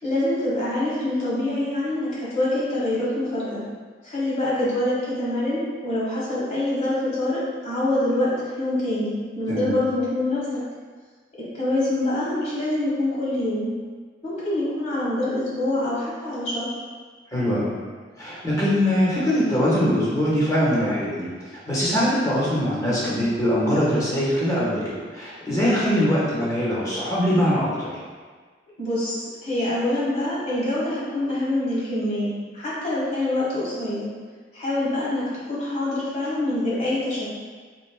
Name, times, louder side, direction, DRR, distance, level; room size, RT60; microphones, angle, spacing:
voice 1, 0.0-3.6 4.0-8.3 8.6-10.4 11.5-13.7 14.2-16.8 28.8-34.1 34.5-35.2 35.5-37.3, left 1 dB, 40° left, -8 dB, 1.5 m, -25 dB
voice 2, 17.3-17.7 18.2-21.3 21.7-27.9, equal, 20° left, -7 dB, 1.2 m, -22 dB
4.5 x 3.9 x 2.2 m, 1.5 s
head